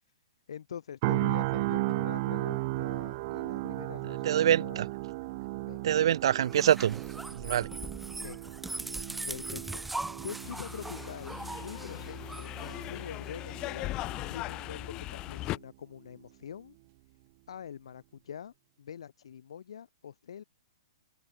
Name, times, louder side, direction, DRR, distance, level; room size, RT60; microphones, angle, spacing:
voice 1, 0.5-4.9 5.7-5.9 7.7-7.9 8.2-8.5 9.3-9.8 10.2-16.8 17.5-20.4, left 8 dB, 75° left, 5.7 m, -44 dB
sound 1, 1.0-15.0 15.4-15.6, right 23 dB, 35° right, 2.3 m, -36 dB
voice 2, 4.2-4.8 5.8-7.0 7.3-7.7, right 10 dB, 60° right, 1.1 m, -25 dB
sound 2, 6.4-13.4, right 2 dB, 5° right, 1.4 m, -41 dB
sound 3, 10.4-15.6, left 18 dB, 25° left, 0.5 m, -39 dB
open air
hypercardioid pair, 155°, 3 cm